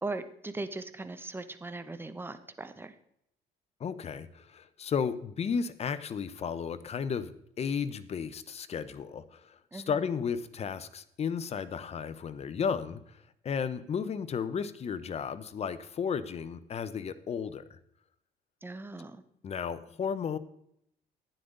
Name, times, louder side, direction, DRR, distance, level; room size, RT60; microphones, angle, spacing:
voice 1, 0.0-2.9 9.7-10.0 18.6-19.2, right 2 dB, 15° right, 10 dB, 0.9 m, -39 dB
voice 2, 3.8-13.2 13.4-17.8 19.4-20.4, left 6 dB, 40° left, 13 dB, 0.8 m, -34 dB
12.0 x 9.5 x 3.9 m, 0.75 s
cardioid pair, 110°, 17 cm